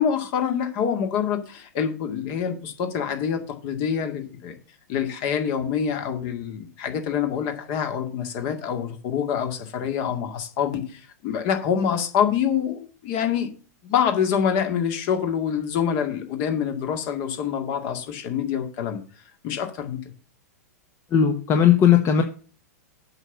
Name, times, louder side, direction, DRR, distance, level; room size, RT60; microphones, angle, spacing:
voice 1, 0.0-4.6 4.9-13.5 13.8-19.0 19.4-20.0, left 8 dB, 45° left, 2.1 m, -26 dB
voice 2, 21.1-22.2, left 8 dB, 30° left, 1.1 m, -17 dB
8.1 x 5.6 x 7.2 m
hypercardioid pair, 105°, 9 cm